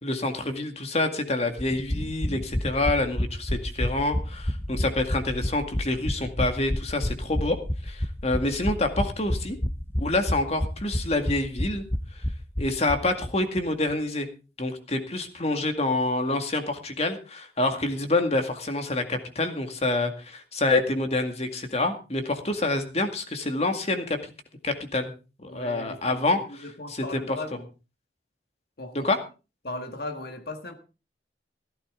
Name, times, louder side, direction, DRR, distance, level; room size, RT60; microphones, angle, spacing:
voice 1, 0.0-7.6 7.8-9.6 10.0-11.8 12.1-12.2 12.6-14.3 14.6-24.2 24.6-25.1 25.4-26.4 26.9-27.4 28.9-29.2, left 2 dB, 35° left, 2.1 m, -27 dB
sound 1, 1.6-13.3 13.6-13.7 13.9-14.0, left 1 dB, 15° left, 0.7 m, -29 dB
voice 2, 25.5-27.7 28.8-29.1 29.6-30.7, left 2 dB, 60° left, 1.8 m, -37 dB
15.5 x 14.0 x 3.8 m
head